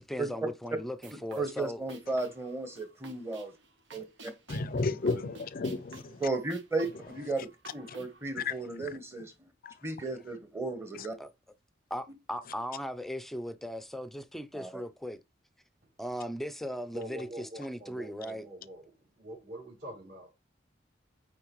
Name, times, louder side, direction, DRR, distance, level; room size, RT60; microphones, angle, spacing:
voice 1, 0.0-1.8 11.2-11.3 11.9-15.2 16.0-18.5, equal, ahead, 0.6 m, -38 dB
sound 1, 0.9-8.3, right 2 dB, 70° right, 1.4 m, -52 dB
voice 2, 1.4-3.5 3.9-4.3 4.7-5.2 6.2-9.3 9.8-11.1 14.5-14.8, right 3 dB, 15° right, 1.2 m, -35 dB
voice 3, 4.5-6.2 8.5-9.0 9.6-9.7 11.0-11.1, left 3 dB, 50° left, 0.5 m, -33 dB
voice 4, 16.9-18.8 19.2-20.3, right 1 dB, 55° right, 3.6 m, -44 dB
8.6 x 4.4 x 3.1 m
head